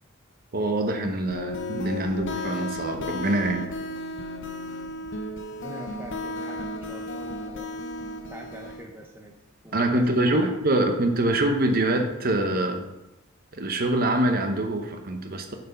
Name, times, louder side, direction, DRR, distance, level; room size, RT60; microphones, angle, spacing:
voice 1, 0.5-3.7 9.7-12.8 13.5-15.5, right 1 dB, 45° right, 5 dB, 0.8 m, -24 dB
sound 1, 1.3-8.9, left 2 dB, 60° left, 0.7 m, -34 dB
voice 2, 5.5-7.8 8.3-9.4 9.6-10.9, right 1 dB, 10° right, 1 dB, 0.6 m, -43 dB
6.7 x 4.3 x 5.3 m, 0.95 s
head